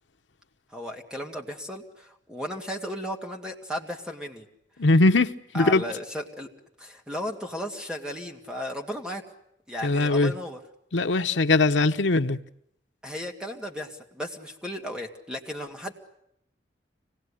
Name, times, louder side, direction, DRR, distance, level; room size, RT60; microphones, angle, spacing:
voice 1, 0.7-4.5 5.5-6.5 6.8-9.3 9.7-10.6 13.0-15.9, equal, 5° right, 2.4 m, -35 dB
voice 2, 4.8-5.8 9.8-10.3 10.9-12.4, left 2 dB, 85° left, 1.0 m, -21 dB
25.5 x 19.0 x 10.0 m
head